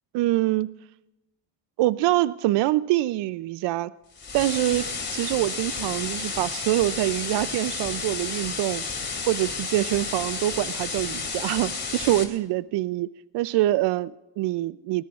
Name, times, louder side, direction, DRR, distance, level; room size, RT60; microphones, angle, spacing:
voice 1, 0.1-0.7 1.8-3.9 4.3-8.8 9.3-13.1 13.3-15.0, right 16 dB, 75° right, 16 dB, 0.5 m, -25 dB
sound 1, 4.2-12.2, left 4 dB, 25° left, 2.7 m, -32 dB
23.5 x 20.5 x 2.4 m, 0.92 s
cardioid pair, 140°, 43 cm